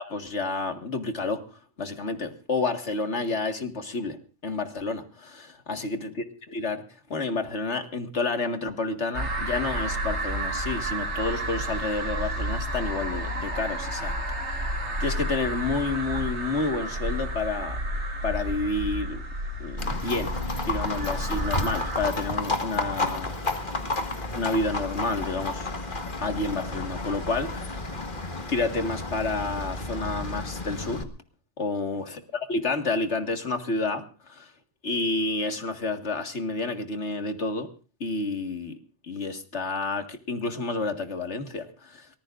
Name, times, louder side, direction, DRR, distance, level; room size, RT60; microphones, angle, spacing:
voice 1, 0.0-1.4 1.8-4.2 4.4-6.8 7.1-14.2 14.4-17.8 18.2-19.2 19.6-20.4 20.7-23.4 24.3-25.7 26.2-27.9 28.5-31.1 31.6-34.5 34.8-37.7 38.0-38.7 39.1-42.1, left 3 dB, 70° left, 6 dB, 2.2 m, -30 dB
sound 1, 9.1-22.0, right 1 dB, 75° right, 4.8 m, -31 dB
Livestock farm animals working animals, 19.8-31.0, left 2 dB, 45° left, 2.0 m, -31 dB
24.0 x 19.5 x 2.6 m, 0.37 s
omnidirectional pair, 1.2 m